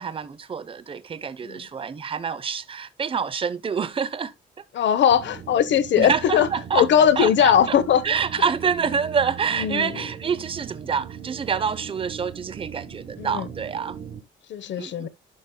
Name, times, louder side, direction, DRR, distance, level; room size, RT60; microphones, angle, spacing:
voice 1, 0.0-4.3 6.0-6.9 7.2-7.8 8.0-14.1 14.8-15.1, right 6 dB, 25° right, 0.6 m, -27 dB
voice 2, 4.7-6.5 6.7-8.0 9.5-10.0 13.2-13.5 14.5-15.1, left 9 dB, 65° left, 0.9 m, -20 dB
sound 1, 5.1-14.2, right 8 dB, 65° right, 1.2 m, -40 dB
11.5 x 5.3 x 2.2 m
cardioid pair, 90°, 20 cm